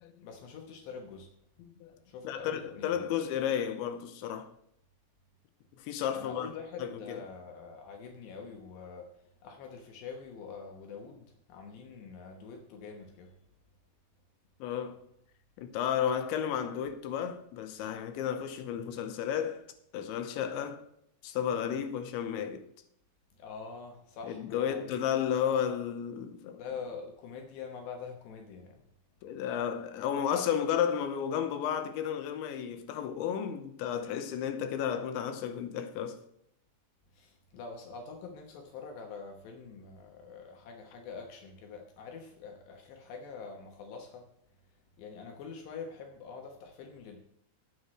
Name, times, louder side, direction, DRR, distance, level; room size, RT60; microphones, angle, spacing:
voice 1, 0.2-1.3 2.1-3.0 6.1-13.3 23.3-25.0 26.6-28.8 37.1-44.3 45.0-47.2, left 5 dB, 75° left, 3.2 m, -45 dB
voice 2, 1.6-2.0 2.2-4.5 5.8-6.5 6.8-7.2 14.6-15.0 15.6-19.6 19.9-20.8 21.2-22.7 24.3-26.6 29.2-36.2, left 8 dB, 90° left, 3.4 m, -33 dB
19.0 x 7.7 x 3.2 m
omnidirectional pair, 5.2 m